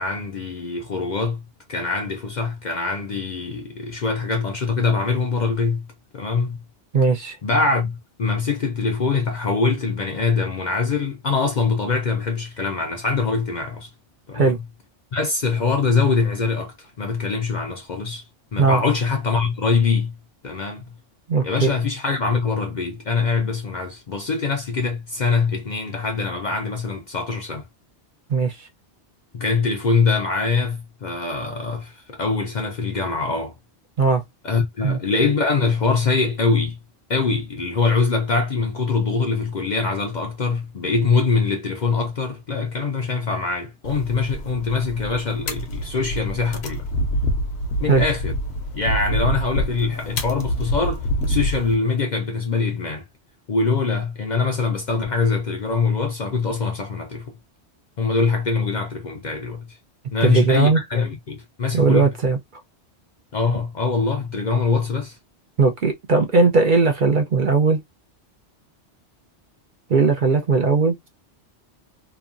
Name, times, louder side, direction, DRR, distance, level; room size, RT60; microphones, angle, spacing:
voice 1, 0.0-1.4 1.7-5.9 6.1-6.6 7.4-13.9 14.3-14.6 15.1-18.2 18.5-20.1 20.4-20.8 21.4-27.6 29.3-33.5 34.4-36.8 37.1-46.9 47.8-48.3 48.7-53.0 53.5-57.4 58.0-59.8 60.1-62.1 63.3-65.2, left 4 dB, 50° left, 0.6 m, -23 dB
voice 2, 6.9-7.4 14.3-14.6 18.6-18.8 21.3-21.7 28.3-28.7 34.0-34.2 34.8-35.0 47.9-48.1 60.2-60.8 61.7-62.4 65.6-67.8 69.9-71.0, right 4 dB, 55° right, 0.7 m, -18 dB
sound 1, 43.8-51.7, equal, 70° left, 0.9 m, -26 dB
2.9 x 2.2 x 2.4 m
omnidirectional pair, 1.2 m